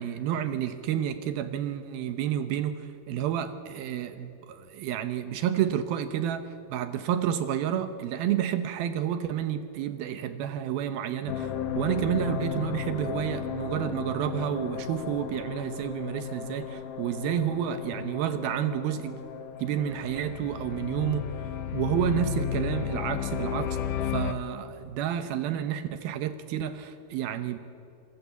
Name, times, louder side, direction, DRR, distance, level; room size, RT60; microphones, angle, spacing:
voice 1, 0.0-19.2 19.6-21.3 21.7-23.8 24.1-27.6, right 10 dB, 75° right, 10 dB, 2.7 m, -30 dB
sound 1, 11.3-24.3, left 9 dB, 65° left, 2.3 m, -34 dB
27.0 x 21.0 x 8.2 m, 2.7 s
omnidirectional pair, 4.5 m